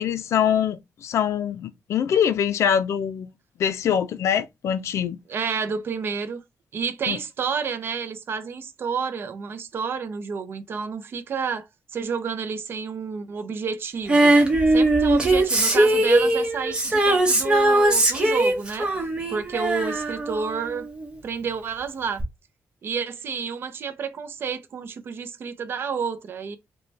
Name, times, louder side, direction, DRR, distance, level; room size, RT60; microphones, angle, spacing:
voice 1, 0.0-3.3 3.6-5.2 7.1-7.2, left 8 dB, 75° left, 0.4 m, -24 dB
voice 2, 5.3-6.4 6.7-11.7 11.9-14.3 14.7-18.9 19.3-20.9 21.2-22.2 22.8-26.6, right 6 dB, 50° right, 0.5 m, -30 dB
Female singing, 14.1-21.1 22.2-22.3, right 1 dB, 20° right, 0.9 m, -20 dB
4.0 x 2.2 x 3.2 m
wide cardioid pair, 165°, 5 cm